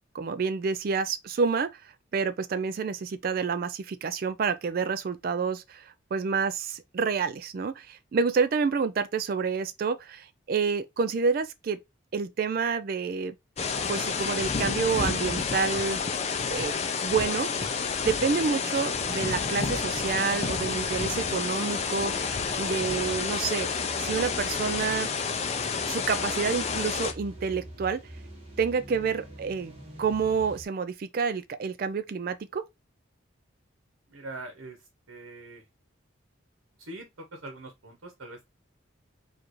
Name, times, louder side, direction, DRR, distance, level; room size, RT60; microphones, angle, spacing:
voice 1, 0.1-1.8 2.1-11.8 12.1-13.3 13.9-16.0 16.5-17.5 18.0-22.1 22.6-23.7 24.0-25.1 25.9-28.0 28.6-29.7 30.0-32.6, right 5 dB, 45° right, 0.3 m, -28 dB
sound 1, 13.6-27.1, left 5 dB, 30° left, 0.4 m, -29 dB
sound 2, 18.1-30.6, right 1 dB, 30° right, 1.3 m, -45 dB
voice 2, 34.1-35.7 36.8-38.5, right 2 dB, 80° right, 1.0 m, -43 dB
4.8 x 2.5 x 3.0 m
head